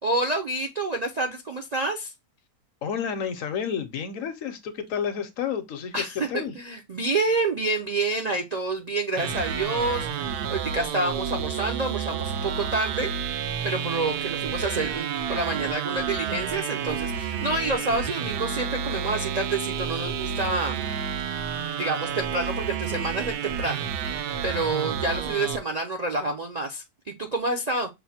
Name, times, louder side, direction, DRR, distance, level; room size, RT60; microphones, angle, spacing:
voice 1, 0.0-2.1 5.9-13.1 13.6-20.8 21.8-23.9 24.4-27.9, right 2 dB, 50° right, 0.4 m, -28 dB
voice 2, 2.8-6.5, left 7 dB, 65° left, 1.0 m, -30 dB
sound 1, 9.2-25.6, right 7 dB, 85° right, 1.2 m, -30 dB
5.9 x 2.1 x 4.2 m
omnidirectional pair, 1.6 m